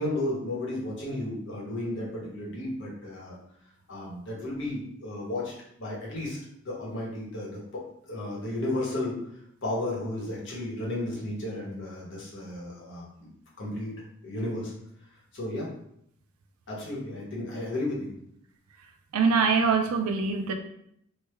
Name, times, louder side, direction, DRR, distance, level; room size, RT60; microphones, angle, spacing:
voice 1, 0.0-3.3 3.9-5.5 5.8-6.4 6.6-7.6 8.1-9.2 9.6-13.3 13.6-13.9 14.2-14.7 15.3-15.7 16.7-18.1, left 1 dB, 60° left, -4 dB, 1.1 m, -33 dB
voice 2, 19.1-20.5, right 5 dB, 90° right, 5 dB, 0.4 m, -23 dB
3.2 x 2.2 x 3.3 m, 0.72 s
head